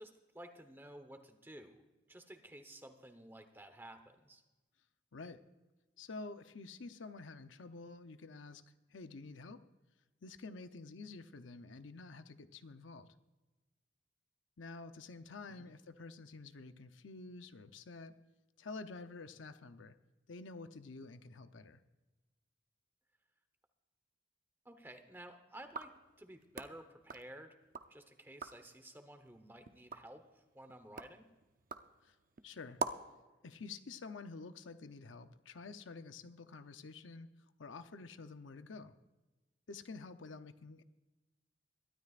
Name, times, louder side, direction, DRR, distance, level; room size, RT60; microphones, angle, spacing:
voice 1, 0.0-4.4 15.5-15.7 24.6-25.9 26.2-27.6 27.9-30.2 30.5-31.2, right 1 dB, 10° right, 7 dB, 1.0 m, -53 dB
voice 2, 5.1-5.4 6.0-8.6 8.9-9.6 10.2-13.1 14.6-18.2 18.6-19.9 20.3-21.8 32.0-32.2 32.4-32.8 33.4-37.3 37.6-38.9 39.7-40.8, left 3 dB, 85° left, 10 dB, 0.7 m, -49 dB
sound 1, 25.6-27.9 28.3-28.7 29.2-33.2, right 4 dB, 45° right, 0.6 m, -46 dB
22.5 x 13.0 x 2.5 m, 1.1 s
head